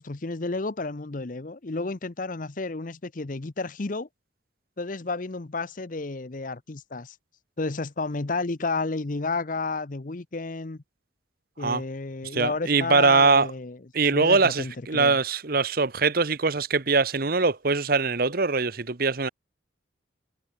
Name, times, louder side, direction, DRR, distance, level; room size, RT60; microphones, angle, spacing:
voice 1, 0.0-4.1 4.8-7.1 7.6-10.8 11.6-13.8 14.1-15.2, left 3 dB, 45° left, 0.8 m, -31 dB
voice 2, 12.3-13.5 13.9-19.3, right 4 dB, 50° right, 1.1 m, -22 dB
head